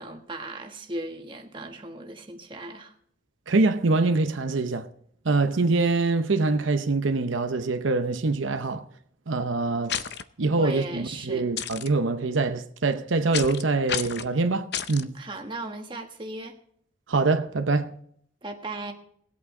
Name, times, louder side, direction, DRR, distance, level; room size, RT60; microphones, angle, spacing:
voice 1, 0.0-2.9 10.5-11.5 15.1-16.6 18.4-18.9, right 2 dB, 25° right, 1.4 m, -37 dB
voice 2, 3.5-4.9 5.2-8.8 9.3-10.0 10.4-15.2 17.1-17.9, right 3 dB, 80° right, 0.8 m, -24 dB
sound 1, 9.9-10.2 11.6-11.9 13.3-13.6 13.9-14.3 14.7-15.0, left 8 dB, 55° left, 0.6 m, -30 dB
19.5 x 8.5 x 3.8 m
head